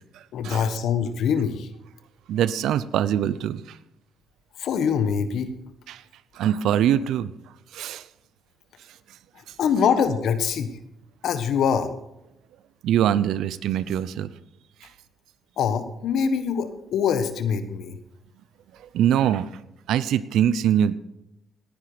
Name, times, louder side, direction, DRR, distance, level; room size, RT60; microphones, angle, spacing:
voice 1, 0.3-1.7 4.6-5.5 9.6-10.7 11.2-11.9 15.6-18.0, left 7 dB, 75° left, 10 dB, 1.4 m, -24 dB
voice 2, 2.3-3.6 5.9-6.0 6.4-7.3 7.7-8.0 12.8-14.3 18.9-19.5 19.9-20.9, right 10 dB, 80° right, 17 dB, 0.7 m, -23 dB
18.5 x 10.0 x 5.1 m, 0.87 s
cardioid pair, 90°, 0 cm